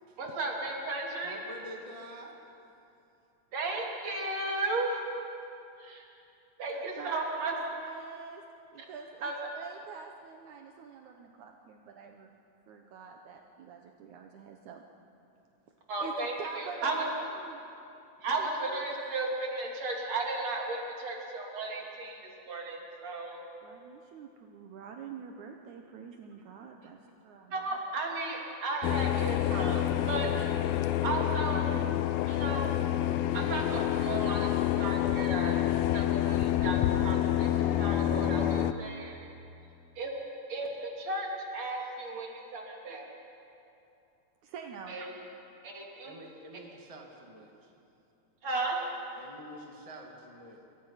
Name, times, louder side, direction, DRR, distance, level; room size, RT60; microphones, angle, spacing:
voice 1, 0.2-1.4 3.5-5.0 5.8-6.0 6.6-7.5 9.2-9.4 15.9-17.1 18.2-23.4 27.5-30.5 30.7-31.7 32.3-32.7 33.3-34.5 34.8-35.6 35.9-39.2 40.0-40.1 40.5-43.1 44.9-45.1 45.6-46.2 48.4-48.8, right 2 dB, 55° right, -1 dB, 4.1 m, -34 dB
voice 2, 1.2-2.4 46.0-47.7 49.2-50.7, right 1 dB, 15° right, 1 dB, 1.8 m, -47 dB
voice 3, 6.7-8.4 8.7-12.4 12.7-14.8 16.0-16.1 16.4-17.6 18.4-19.0 23.6-27.8 44.4-45.0, right 6 dB, 75° right, 3 dB, 2.4 m, -46 dB
sound 1, 28.8-38.7, left 12 dB, 80° left, 1.4 m, -28 dB
27.0 x 24.0 x 5.8 m, 2.7 s
omnidirectional pair, 3.6 m